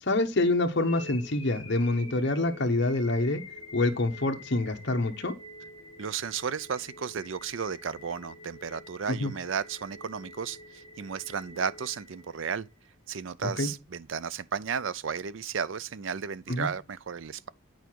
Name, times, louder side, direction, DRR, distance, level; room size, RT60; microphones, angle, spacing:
voice 1, 0.0-3.4 3.7-5.3 9.1-9.3 13.4-13.7 16.5-16.7, left 2 dB, 55° left, 1.0 m, -26 dB
sound 1, 0.8-12.8, left 2 dB, 25° left, 1.6 m, -47 dB
voice 2, 6.0-12.7 13.1-17.5, right 6 dB, 70° right, 0.5 m, -34 dB
9.2 x 4.8 x 4.5 m
head